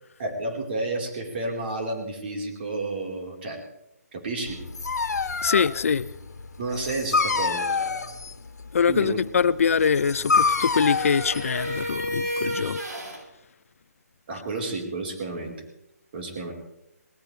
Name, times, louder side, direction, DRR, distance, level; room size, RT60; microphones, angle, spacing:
voice 1, 0.2-3.6 4.1-4.6 6.6-8.0 8.9-9.2 14.3-15.6 16.1-16.5, right 2 dB, 35° right, 1 dB, 4.2 m, -31 dB
Dog, 4.5-12.3, left 4 dB, 85° left, 1.7 m, -27 dB
voice 2, 5.4-6.1 8.7-12.8, left 6 dB, 60° left, 16 dB, 0.6 m, -23 dB
sound 1, 9.6-13.2, equal, 90° right, 7.7 m, -33 dB
22.0 x 19.5 x 3.3 m, 0.85 s
hypercardioid pair, 165°, 9 cm